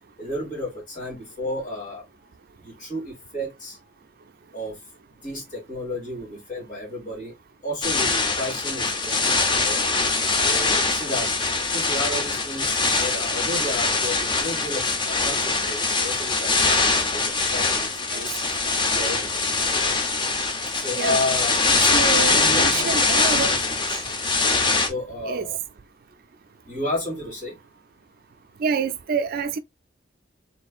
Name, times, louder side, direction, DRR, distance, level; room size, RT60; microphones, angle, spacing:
voice 1, 0.2-2.0 2.6-3.8 4.5-4.8 5.2-7.3 7.6-9.8 10.3-11.4 11.7-18.4 18.9-19.8 20.7-22.0 22.3-23.0 23.3-23.8 24.8-25.6 26.7-27.6, left 1 dB, 40° left, 2.6 m, -32 dB
sound 1, 7.8-24.9, left 3 dB, 25° left, 0.7 m, -23 dB
voice 2, 21.9-23.5 25.2-25.4 28.6-29.6, right 5 dB, 50° right, 0.4 m, -27 dB
4.4 x 3.7 x 2.3 m
head